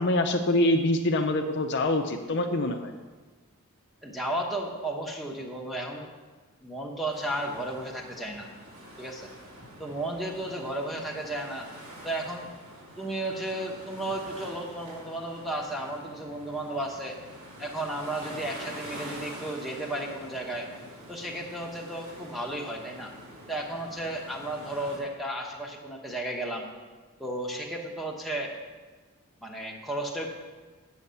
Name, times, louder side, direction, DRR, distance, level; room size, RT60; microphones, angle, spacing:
voice 1, 0.0-2.9, left 1 dB, 50° left, 5 dB, 0.6 m, -25 dB
voice 2, 4.0-6.1 6.6-8.5 9.0-9.3 9.8-11.7 12.0-12.5 13.0-17.2 17.6-20.7 21.1-23.1 23.5-26.7 27.2-28.5 29.4-30.3, right 1 dB, ahead, -1 dB, 1.0 m, -34 dB
sound 1, 7.1-25.0, right 1 dB, 65° right, 2.6 m, -46 dB
8.4 x 6.4 x 6.9 m, 1.4 s
head